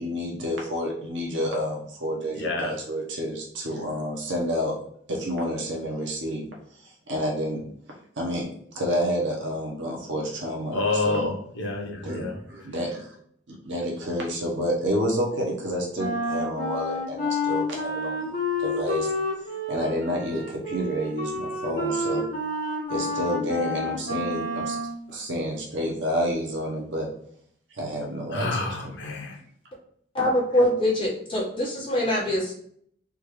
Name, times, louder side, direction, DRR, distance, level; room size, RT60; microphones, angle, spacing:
voice 1, 0.0-4.7 5.1-6.5 6.8-7.6 8.2-8.5 8.7-11.3 12.0-13.1 13.5-19.1 19.7-22.3 22.9-24.8 25.1-27.1 27.7-28.7, equal, 85° right, -1 dB, 0.8 m, -29 dB
voice 2, 2.3-2.7 10.7-12.4 28.3-29.4, left 3 dB, 75° left, 1 dB, 0.8 m, -28 dB
Wind instrument woodwind instrument, 15.9-25.0, left 1 dB, 50° left, 1.3 m, -29 dB
voice 3, 30.1-32.6, left 1 dB, 30° left, -6 dB, 1.3 m, -24 dB
3.6 x 2.3 x 3.1 m, 0.64 s
head